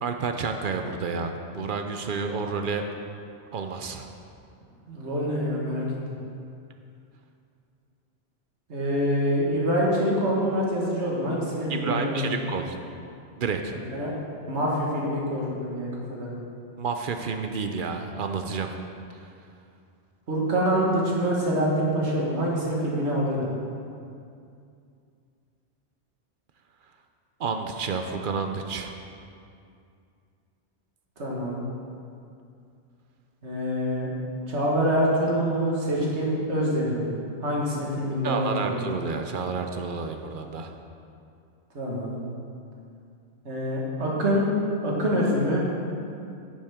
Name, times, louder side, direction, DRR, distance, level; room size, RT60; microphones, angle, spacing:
voice 1, 0.0-2.8 3.5-4.1 11.7-12.8 13.4-13.8 16.8-18.7 27.4-29.0 38.2-40.7, right 5 dB, 60° right, 5 dB, 0.6 m, -30 dB
voice 2, 4.9-5.9 8.7-12.2 13.9-14.1 14.5-16.3 20.3-23.4 31.2-31.6 33.4-34.1 34.5-37.1 37.4-38.7 41.7-42.2 43.4-44.5 44.8-45.7, equal, 85° right, -3 dB, 1.8 m, -25 dB
10.0 x 7.3 x 3.6 m, 2.5 s
omnidirectional pair, 1.1 m